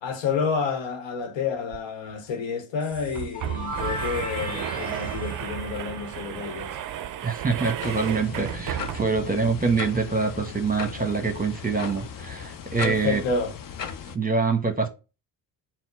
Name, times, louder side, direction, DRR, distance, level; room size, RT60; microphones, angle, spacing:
voice 1, 0.0-6.8 12.8-13.5, left 5 dB, 65° left, 0.9 m, -29 dB
sound 1, 1.7-1.8 2.1-2.2 2.9-9.3, right 11 dB, 40° right, 0.5 m, -33 dB
sound 2, 2.8-7.5, equal, 15° left, 1.4 m, -37 dB
voice 2, 7.2-13.2 14.1-14.9, right 4 dB, 15° right, 1.1 m, -25 dB
sound 3, 7.8-14.2, left 7 dB, 40° left, 0.6 m, -37 dB
4.2 x 2.1 x 4.4 m
hypercardioid pair, 50°, 50 cm